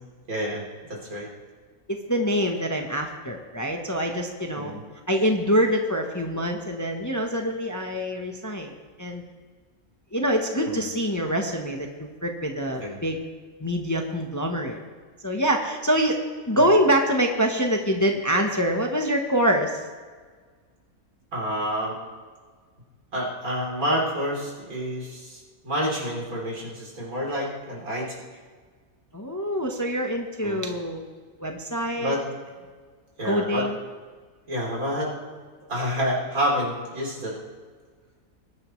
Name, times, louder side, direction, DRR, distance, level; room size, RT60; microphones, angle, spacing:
voice 1, 0.3-0.6 0.9-1.3 4.5-4.8 10.7-10.8 12.8-13.0 21.3-21.9 23.1-28.1 30.4-30.6 32.0-32.2 33.2-33.6 34.5-35.1 35.7-37.4, equal, 80° right, -3 dB, 3.9 m, -28 dB
voice 2, 1.9-4.7 5.1-9.2 10.1-13.2 13.6-14.8 15.2-16.2 16.5-19.8 29.1-31.0 31.4-32.2 33.2-33.8, equal, 15° left, 2 dB, 0.9 m, -25 dB
21.0 x 10.5 x 3.2 m, 1.5 s
omnidirectional pair, 1.5 m